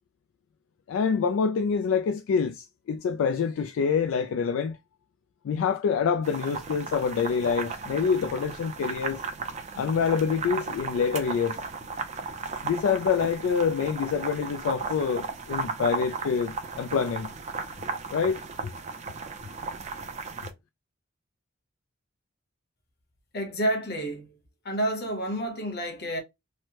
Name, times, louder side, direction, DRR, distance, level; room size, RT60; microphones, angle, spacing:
voice 1, 0.9-4.8 5.4-9.2 9.8-11.6 12.6-17.3 18.1-18.4, left 6 dB, 75° left, 0.3 m, -26 dB
sound 1, 6.2-20.5, right 4 dB, 35° right, 0.5 m, -35 dB
voice 2, 23.3-24.4 24.6-26.2, right 1 dB, 55° left, 1.1 m, -29 dB
3.2 x 2.1 x 2.8 m
head